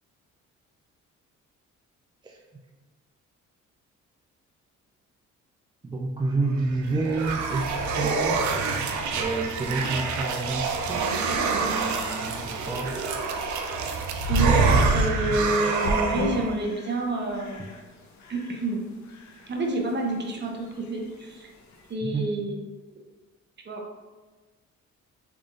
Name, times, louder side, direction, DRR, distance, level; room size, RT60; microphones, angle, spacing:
voice 1, 5.8-8.7 9.1-13.0 22.0-22.3, right 3 dB, 15° right, -1 dB, 0.3 m, -30 dB
sound 1, 6.6-16.6, right 4 dB, 70° right, 0.5 m, -26 dB
sound 2, 12.0-21.9, left 1 dB, 70° left, 0.7 m, -39 dB
voice 2, 14.3-17.7 18.3-18.8 19.5-21.5 21.9-22.5 23.7-23.8, right 2 dB, 35° right, 1 dB, 0.7 m, -28 dB
3.5 x 3.3 x 2.5 m, 1.3 s
cardioid pair, 90°, 30 cm